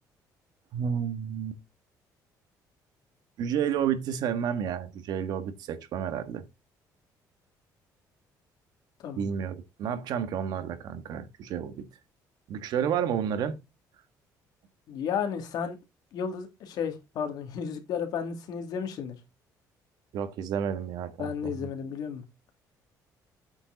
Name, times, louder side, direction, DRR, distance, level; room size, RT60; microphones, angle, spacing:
voice 1, 0.7-1.6 3.4-6.4 9.2-11.9 12.5-13.6 20.1-21.7, right 8 dB, 65° right, 1.5 m, -31 dB
voice 2, 14.9-15.8 16.1-19.1 21.2-22.2, left 7 dB, 65° left, 2.4 m, -33 dB
8.8 x 7.2 x 4.0 m
cardioid pair, 150°, 7 cm